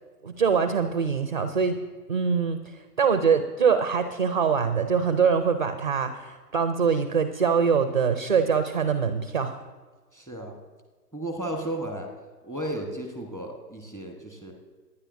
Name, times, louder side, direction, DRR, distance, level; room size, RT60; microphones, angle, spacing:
voice 1, 0.2-1.8 2.1-2.6 3.0-9.6, right 6 dB, 30° right, 9 dB, 0.4 m, -23 dB
voice 2, 10.1-10.6 11.1-12.1 12.4-14.5, right 1 dB, 5° left, 2 dB, 1.1 m, -34 dB
24.0 x 10.0 x 2.6 m, 1.4 s
figure-of-eight pair, 130°, 49 cm